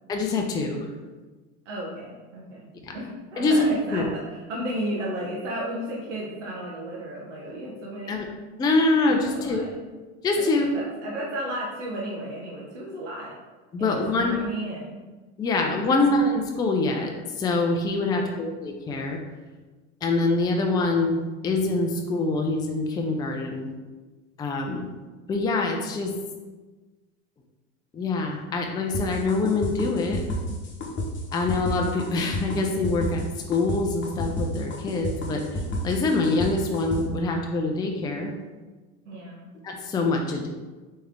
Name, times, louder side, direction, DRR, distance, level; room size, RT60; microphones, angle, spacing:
voice 1, 0.1-0.9 2.8-3.0 3.4-3.7 3.9-4.1 8.1-8.3 8.6-9.6 10.2-10.7 13.7-14.4 15.4-19.2 20.0-23.7 24.4-24.9 25.3-26.1 27.9-30.2 31.3-33.2 33.5-38.3 39.6-40.5, left 3 dB, 10° left, 2 dB, 0.4 m, -25 dB
voice 2, 1.7-8.2 9.2-9.7 10.4-13.3 13.8-15.0 18.0-18.3 39.0-39.5, right 1 dB, 90° right, -4 dB, 0.9 m, -34 dB
sound 1, 28.9-37.0, left 1 dB, 35° left, 1.0 m, -30 dB
3.3 x 3.2 x 3.6 m, 1.3 s
hypercardioid pair, 100°, 35 cm